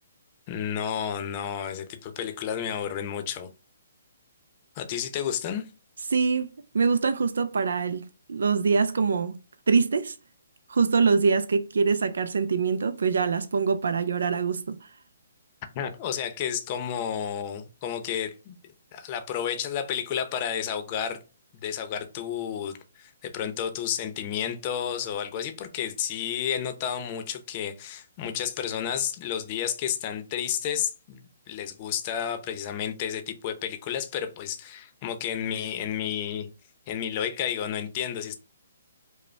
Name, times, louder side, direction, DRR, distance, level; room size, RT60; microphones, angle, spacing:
voice 1, 0.5-3.5 4.8-5.7 15.7-18.6 18.9-21.2 21.6-36.5 36.9-38.3, left 9 dB, 35° left, 0.7 m, -31 dB
voice 2, 6.1-9.4 9.7-10.2 10.7-14.9, right 5 dB, 80° right, 0.4 m, -24 dB
5.1 x 2.1 x 3.2 m
hypercardioid pair, 150°, 0 cm